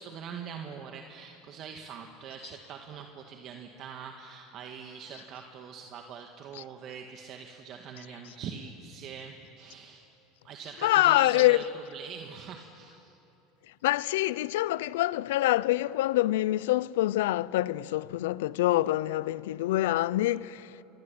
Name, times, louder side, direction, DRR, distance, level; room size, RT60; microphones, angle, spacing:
voice 1, 0.0-10.1 10.4-13.2, right 6 dB, 45° right, 1.8 m, -43 dB
voice 2, 10.8-11.6 13.8-20.7, left 16 dB, 85° left, 0.6 m, -25 dB
29.0 x 23.0 x 8.7 m
supercardioid pair, 130°, 0 cm